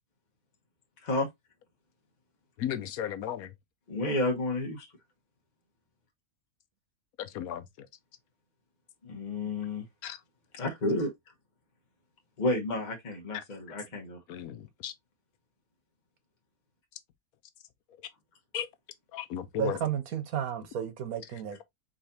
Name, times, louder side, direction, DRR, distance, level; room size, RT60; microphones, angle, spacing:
voice 1, 2.6-3.5 7.2-7.9 10.0-10.2 13.3-13.4 14.3-14.9 18.0-18.1 18.5-18.7 19.1-19.8 21.3-21.4, left 10 dB, 85° left, 1.2 m, -35 dB
voice 2, 3.9-4.9 9.0-9.8 10.6-11.1 12.4-14.2, left 2 dB, 35° left, 1.1 m, -30 dB
voice 3, 19.6-21.6, right 9 dB, 75° right, 1.4 m, -32 dB
4.8 x 4.0 x 2.7 m
omnidirectional pair, 1.5 m